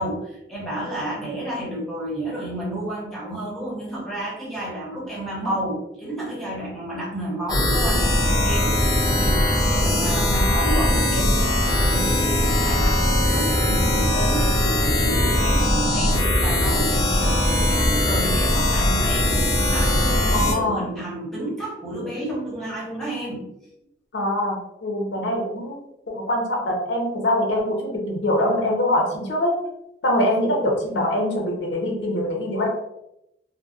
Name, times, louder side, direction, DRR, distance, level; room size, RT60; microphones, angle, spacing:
voice 1, 0.0-23.5, right 1 dB, ahead, -6 dB, 0.8 m, -31 dB
sound 1, 7.5-20.5, left 1 dB, 20° left, 0.3 m, -20 dB
voice 2, 20.3-20.8 24.1-25.8 26.1-29.5 30.0-32.7, left 1 dB, 80° left, 0 dB, 0.6 m, -23 dB
2.7 x 2.0 x 2.3 m, 0.82 s
head